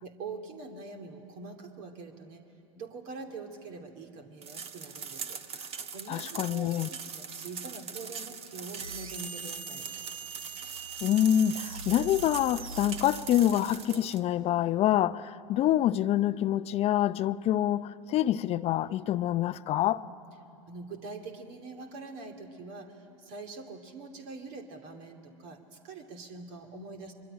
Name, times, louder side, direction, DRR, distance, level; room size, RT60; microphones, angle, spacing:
voice 1, 0.0-2.4 2.8-5.4 5.9-9.9 20.0-20.1 20.7-27.1, right 4 dB, 50° right, 2.7 m, -44 dB
sound 1, 4.4-14.2, right 6 dB, 35° right, 1.4 m, -41 dB
voice 2, 6.1-6.9 11.0-20.0, left 12 dB, 35° left, 0.6 m, -26 dB
sound 2, 8.8-13.7, right 6 dB, 85° right, 1.0 m, -43 dB
24.5 x 23.5 x 10.0 m
hypercardioid pair, 90°, 17 cm